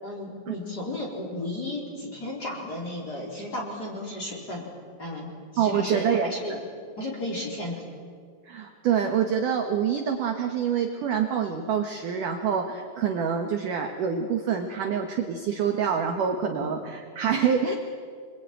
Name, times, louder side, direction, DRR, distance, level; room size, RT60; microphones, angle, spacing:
voice 1, 0.0-4.7 5.0-6.6 7.0-7.8 16.5-16.8, left 1 dB, 20° left, -2 dB, 3.8 m, -34 dB
voice 2, 5.6-6.3 8.5-17.7, right 7 dB, 75° right, 3 dB, 1.9 m, -26 dB
27.0 x 22.5 x 9.1 m, 2.1 s
omnidirectional pair, 5.8 m